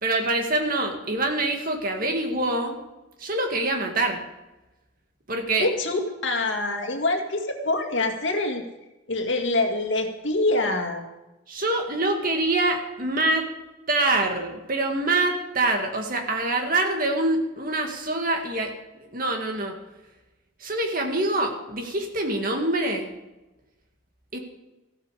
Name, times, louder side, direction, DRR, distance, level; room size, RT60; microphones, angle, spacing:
voice 1, 0.0-2.8 3.2-4.2 5.3-5.7 11.5-13.5 13.9-18.7 19.1-19.8 20.6-23.1 24.3-24.4, right 2 dB, 45° right, 3 dB, 2.0 m, -25 dB
voice 2, 5.6-8.6 9.1-11.0, left 2 dB, 70° left, 3 dB, 2.1 m, -25 dB
15.0 x 13.5 x 5.0 m, 1.0 s
head